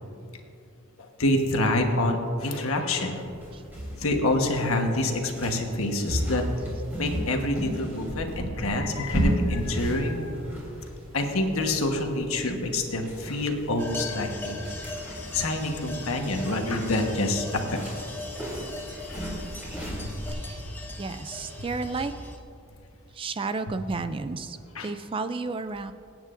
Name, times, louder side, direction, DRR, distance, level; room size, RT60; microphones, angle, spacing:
voice 1, 1.0-3.2 4.0-6.4 7.0-10.3 11.1-14.9 15.3-17.8 20.0-20.1 24.7-24.9, left 1 dB, 75° left, 3 dB, 1.3 m, -27 dB
sound 1, 3.2-20.3, equal, 10° right, 3.3 m, -35 dB
sound 2, 13.8-22.4, left 2 dB, 10° left, 0.9 m, -39 dB
voice 2, 21.0-22.1 23.1-24.6 24.8-25.9, right 3 dB, 25° right, 10 dB, 0.3 m, -32 dB
24.5 x 9.0 x 2.6 m, 2.6 s
head